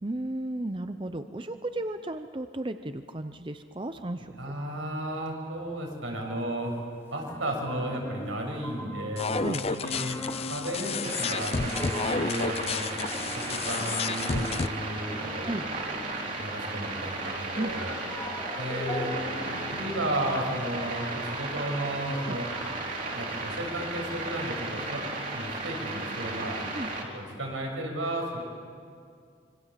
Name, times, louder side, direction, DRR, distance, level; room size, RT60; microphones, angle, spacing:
voice 1, 0.0-4.5 9.4-9.6 15.4-15.6 17.5-17.7 22.2-22.4 26.7-26.9, right 1 dB, 25° right, 9 dB, 0.6 m, -34 dB
voice 2, 4.4-6.7 7.1-10.2 10.5-12.9 13.5-15.5 16.4-17.9 18.6-19.1 19.7-22.5 23.2-25.0 25.3-26.7 27.1-28.4, right 1 dB, 85° right, 0 dB, 6.7 m, -33 dB
sound 1, 6.4-6.5 7.3-16.8 17.0-20.9, equal, 15° left, 2.9 m, -41 dB
sound 2, 9.2-14.7, left 4 dB, 30° left, 0.5 m, -31 dB
sound 3, 11.0-27.0, right 2 dB, 40° right, 3.7 m, -35 dB
26.0 x 24.5 x 7.5 m, 2.3 s
head